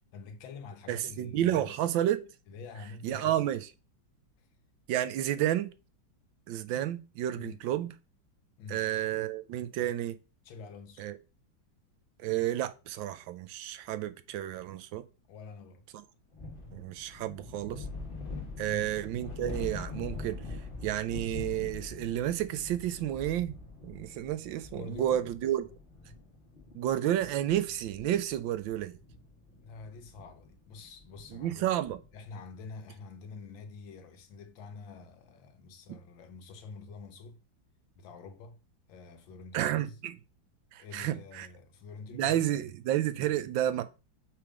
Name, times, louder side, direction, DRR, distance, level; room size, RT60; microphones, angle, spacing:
voice 1, 0.1-1.8 2.5-3.4 7.3-7.6 8.6-8.9 10.4-11.1 15.3-15.8 18.6-18.8 24.7-25.2 29.6-31.7 32.1-37.4 38.0-38.6 38.9-40.0 40.8-42.6 43.1-43.4, left 4 dB, 80° left, 1.6 m, -46 dB
voice 2, 0.9-2.3 3.0-3.6 4.9-5.7 6.5-7.9 8.7-10.2 11.0-11.2 12.2-15.0 16.7-17.9 18.6-20.4 20.8-23.6 23.8-25.6 26.7-29.0 31.3-32.0 39.5-40.1 40.7-41.5 42.1-43.8, right 12 dB, 80° right, 1.3 m, -31 dB
sound 1, 16.3-32.2, left 3 dB, 30° left, 1.6 m, -44 dB
5.7 x 3.5 x 4.8 m
omnidirectional pair, 2.1 m